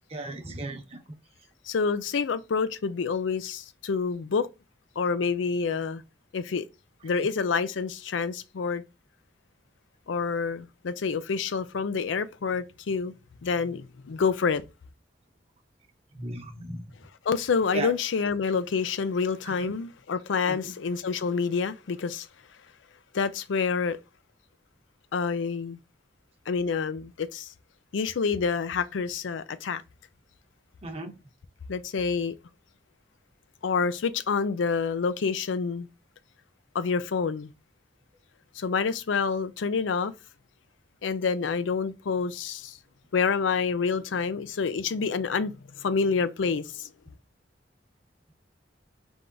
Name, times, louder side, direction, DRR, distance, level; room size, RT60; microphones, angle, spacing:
voice 1, 0.1-1.0 16.1-16.8 17.7-17.9 19.4-19.7 20.5-20.7 30.8-31.1, right 2 dB, 35° right, 0.9 m, -35 dB
voice 2, 1.7-4.5 5.0-6.0 6.3-6.6 7.0-8.8 10.1-13.1 13.4-14.6 17.3-22.3 23.1-24.0 25.1-25.8 26.5-27.5 27.9-29.8 31.7-32.4 33.6-35.9 36.7-37.5 38.6-40.1 41.0-42.8 43.1-46.9, left 5 dB, 85° left, 0.5 m, -28 dB
3.5 x 3.4 x 3.8 m
head